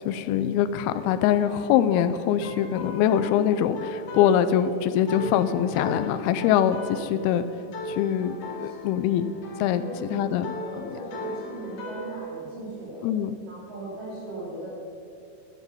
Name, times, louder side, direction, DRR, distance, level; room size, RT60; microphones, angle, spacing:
voice 1, 0.1-7.5 7.9-9.3 9.6-9.8 10.1-10.5 13.0-13.3, left 10 dB, 85° left, 11 dB, 2.2 m, -23 dB
sound 1, 0.9-12.2, left 2 dB, 55° left, 2.8 m, -38 dB
voice 2, 8.6-9.0 9.6-10.2 10.5-13.0 13.5-14.7, right 1 dB, 65° right, -6 dB, 4.6 m, -38 dB
12.0 x 11.5 x 5.6 m, 2.5 s
omnidirectional pair, 4.9 m